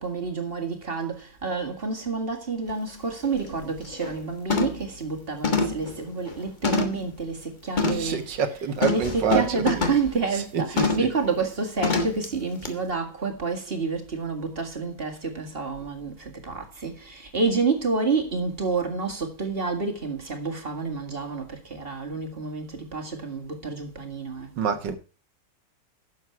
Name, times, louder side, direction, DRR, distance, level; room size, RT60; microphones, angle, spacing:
voice 1, 0.0-8.2 8.9-24.6, right 4 dB, 35° right, 2.1 m, -29 dB
sound 1, 2.7-2.8 3.2-3.5 3.9-4.2 4.5-4.9 5.4-7.1 7.8-8.1 8.8-10.1 10.8-11.1 11.8-12.3 12.6-12.7, left 4 dB, 30° left, 1.4 m, -26 dB
voice 2, 7.8-9.8 10.3-11.1 24.6-25.0, right 6 dB, 85° right, 2.0 m, -27 dB
11.5 x 7.3 x 4.6 m
omnidirectional pair, 1.9 m